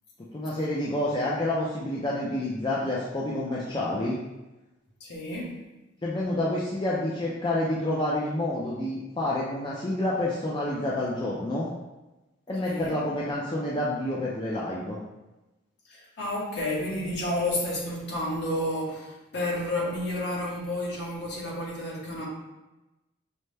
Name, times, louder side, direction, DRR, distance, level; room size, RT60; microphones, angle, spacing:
voice 1, 0.3-4.2 6.0-11.7 12.5-15.0, left 1 dB, 25° left, -6 dB, 0.4 m, -28 dB
voice 2, 5.0-5.5 12.6-13.0 15.9-22.3, left 1 dB, 55° left, -4 dB, 1.1 m, -31 dB
5.3 x 2.1 x 3.3 m, 1.0 s
head